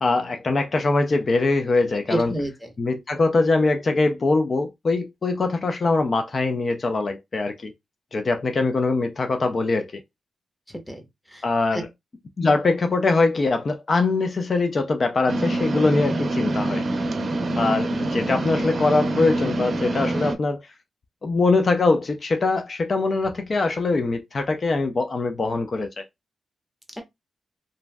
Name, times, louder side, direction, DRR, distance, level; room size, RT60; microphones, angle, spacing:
voice 1, 0.0-2.3 2.8-7.7 8.1-9.9 11.4-11.9 12.4-16.8 17.6-20.6 21.2-26.0, left 3 dB, 50° left, 0.4 m, -22 dB
voice 2, 2.1-2.7 10.7-11.4 11.7-11.8 27.0-27.1, right 1 dB, ahead, 0.9 m, -30 dB
sound 1, 15.3-20.4, right 1 dB, 55° right, 0.5 m, -25 dB
3.0 x 2.6 x 2.2 m
cardioid pair, 80°, 0 cm